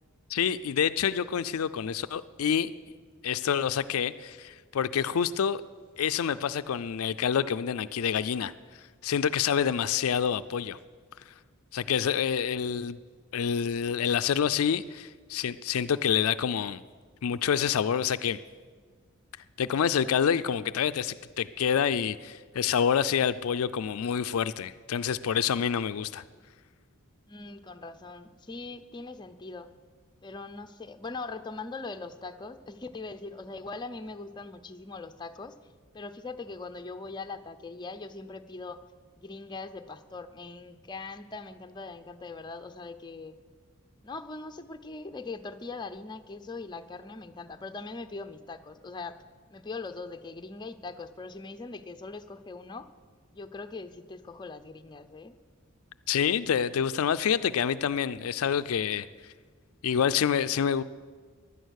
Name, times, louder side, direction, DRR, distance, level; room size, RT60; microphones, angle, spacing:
voice 1, 0.3-2.7 3.2-5.6 6.0-8.5 9.0-10.8 11.7-13.0 13.3-16.8 17.2-18.4 19.6-26.2 56.1-59.1 59.8-60.8, left 8 dB, 70° left, 13 dB, 0.4 m, -27 dB
voice 2, 27.3-29.7 30.2-35.6 35.9-38.8 39.2-43.4 44.0-49.2 49.5-52.9 53.3-55.4, left 3 dB, 20° left, 8 dB, 0.6 m, -41 dB
16.0 x 11.0 x 6.4 m, 1.5 s
head